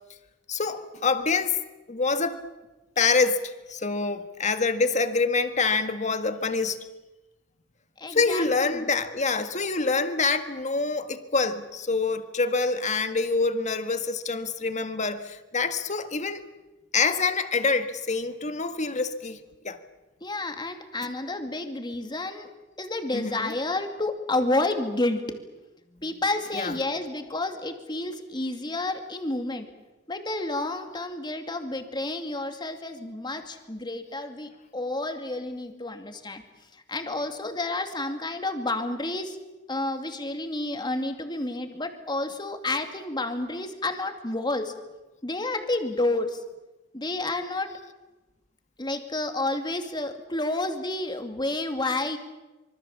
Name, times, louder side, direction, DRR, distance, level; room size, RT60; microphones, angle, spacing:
voice 1, 0.5-1.6 1.9-2.4 3.0-6.8 8.1-16.4 16.9-19.4 19.6-19.8 23.1-23.5 26.5-26.7, left 4 dB, 40° left, 1.7 m, -26 dB
voice 2, 8.0-8.9 20.2-22.5 22.8-25.4 25.9-29.7 30.1-36.4 36.7-39.4 39.7-44.7 45.2-46.4 46.9-47.7 48.8-52.2, left 2 dB, 25° left, 2.5 m, -30 dB
25.5 x 24.0 x 7.3 m
head